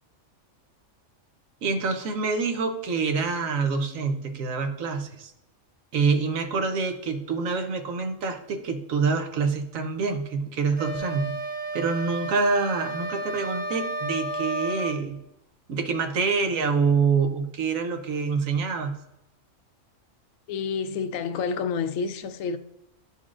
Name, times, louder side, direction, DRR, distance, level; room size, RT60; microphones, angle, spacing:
voice 1, 1.6-5.3 5.9-11.4 11.7-15.2 15.7-19.0, right 4 dB, 80° right, 1.2 m, -26 dB
sound 1, 10.8-15.0, right 2 dB, 10° right, 0.6 m, -32 dB
voice 2, 20.5-22.6, left 5 dB, 80° left, 0.9 m, -29 dB
11.5 x 4.2 x 2.5 m
omnidirectional pair, 1.4 m